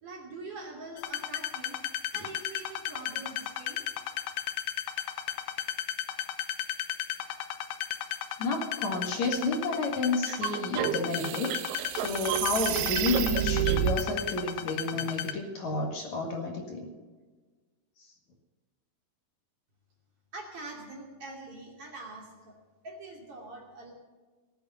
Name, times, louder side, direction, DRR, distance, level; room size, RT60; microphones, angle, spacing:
voice 1, 0.0-1.8 2.1-3.8 20.3-22.5 22.8-23.9, right 2 dB, 35° right, -1 dB, 2.8 m, -44 dB
sound 1, 1.0-15.3, left 11 dB, 85° left, 2.1 m, -35 dB
voice 2, 8.4-16.9, left 2 dB, 55° left, 1 dB, 2.3 m, -31 dB
sound 2, 10.3-14.0, right 11 dB, 85° right, 2.3 m, -30 dB
18.5 x 8.8 x 7.0 m, 1.3 s
omnidirectional pair, 5.5 m